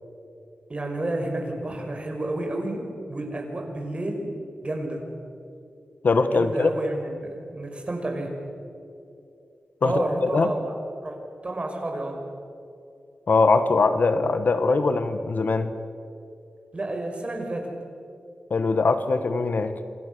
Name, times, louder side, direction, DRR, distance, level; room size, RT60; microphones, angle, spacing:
voice 1, 0.7-4.3 4.6-5.1 6.3-8.3 9.8-10.7 11.0-11.2 11.4-12.2 16.7-17.7, right 1 dB, 35° right, 2 dB, 5.9 m, -30 dB
voice 2, 6.0-6.7 9.8-10.0 10.3-10.5 13.3-15.7 18.5-19.8, left 3 dB, 65° left, 10 dB, 1.5 m, -21 dB
27.5 x 27.0 x 7.0 m, 2.6 s
wide cardioid pair, 95°, 3 cm